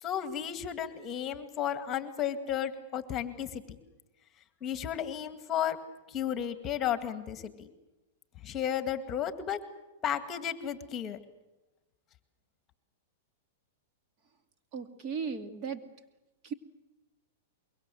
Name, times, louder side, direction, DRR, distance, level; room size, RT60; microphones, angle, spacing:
voice 1, 0.0-3.8 4.6-5.8 6.1-7.7 8.4-9.6 10.0-11.2, left 9 dB, 25° left, 10 dB, 2.1 m, -33 dB
voice 2, 14.7-15.8 16.4-16.5, right 6 dB, 35° right, 6 dB, 2.5 m, -36 dB
24.5 x 23.0 x 7.8 m, 0.99 s
hypercardioid pair, 135°, 0 cm